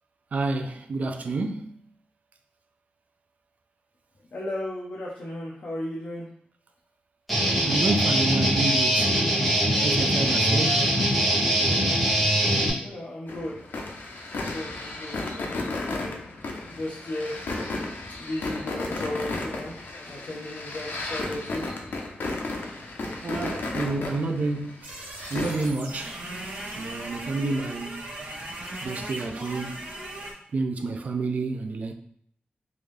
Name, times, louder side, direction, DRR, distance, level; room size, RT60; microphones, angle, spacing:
voice 1, 0.3-1.8 7.6-9.2 9.8-10.9 23.2-24.9 25.3-26.1 26.8-28.0 28.8-29.8 30.5-31.9, right 3 dB, 50° right, 0.4 m, -29 dB
voice 2, 4.3-6.3 12.8-13.6 14.3-16.2 16.6-17.3 18.2-19.8 20.1-21.6, left 1 dB, 55° left, 0.7 m, -35 dB
Guitar, 7.3-12.7, right 1 dB, ahead, 1.0 m, -22 dB
sound 1, 13.3-25.7, left 2 dB, 85° left, 0.6 m, -34 dB
sound 2, 24.8-30.3, right 1 dB, 70° right, 1.2 m, -38 dB
3.6 x 2.6 x 3.2 m
wide cardioid pair, 175°, 3 cm